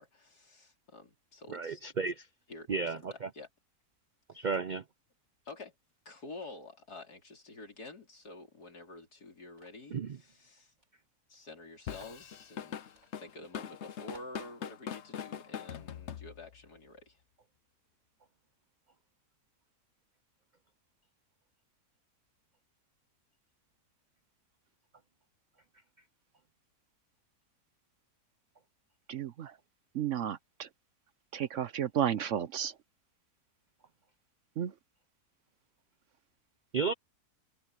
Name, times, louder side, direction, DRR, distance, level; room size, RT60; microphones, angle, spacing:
voice 1, 0.0-1.9 2.5-3.5 4.3-4.5 5.4-5.7 6.0-10.7 11.3-17.2, left 2 dB, 80° left, 4.7 m, -49 dB
voice 2, 1.5-2.3 2.7-3.3 4.3-4.8 9.9-10.2 36.7-36.9, right 5 dB, 85° right, 0.4 m, -33 dB
sound 1, 9.6-9.9 10.8-10.9 11.2-11.3 11.9-12.2 12.9-13.1 13.6-13.7 14.1-14.4, right 1 dB, 30° right, 3.1 m, -58 dB
Drum kit / Drum, 11.9-16.7, left 8 dB, 55° left, 0.9 m, -42 dB
voice 3, 29.1-29.6 29.9-30.7 31.3-32.7 34.6-34.7, right 9 dB, 60° right, 0.9 m, -33 dB
omnidirectional pair, 1.6 m